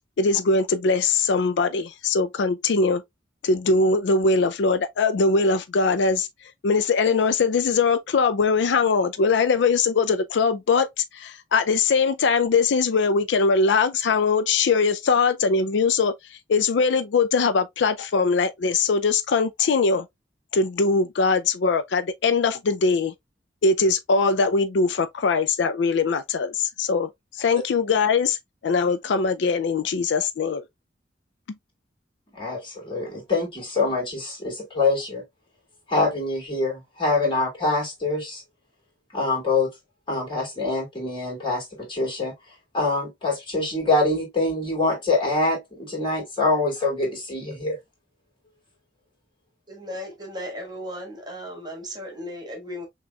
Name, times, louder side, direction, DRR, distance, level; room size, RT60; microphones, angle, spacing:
voice 1, 0.2-3.0 3.4-6.3 6.6-20.1 20.5-23.1 23.6-28.4 28.6-30.6, left 4 dB, 70° left, 0.4 m, -21 dB
voice 2, 32.3-35.2 35.9-38.4 39.1-39.7 40.1-42.3 42.7-47.8, left 2 dB, 30° left, 2.6 m, -25 dB
voice 3, 49.7-52.8, equal, 25° right, 1.4 m, -36 dB
6.1 x 2.9 x 2.2 m
head